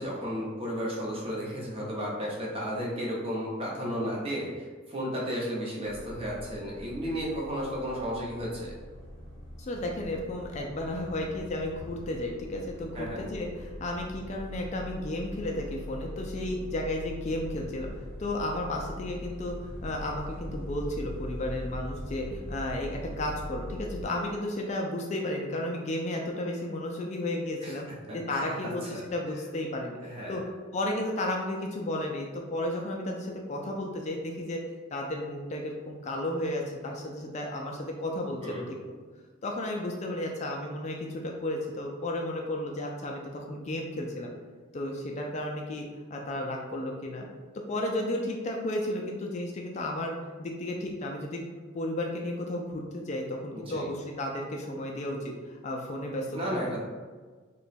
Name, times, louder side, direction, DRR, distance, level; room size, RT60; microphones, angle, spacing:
voice 1, 0.0-8.8 12.9-13.2 27.6-27.8 28.1-29.0 30.0-30.4 38.4-38.7 53.5-53.9 56.3-56.8, equal, 30° right, -4 dB, 0.7 m, -33 dB
sound 1, 5.8-24.0, left 1 dB, 80° right, 1.2 m, -42 dB
voice 2, 9.6-27.9 28.1-30.0 30.3-30.4 30.7-34.6 34.9-38.8 39.4-44.3 44.7-47.3 47.7-51.5 51.7-56.8, left 1 dB, 35° left, 1 dB, 0.3 m, -33 dB
2.9 x 2.2 x 4.1 m, 1.5 s
head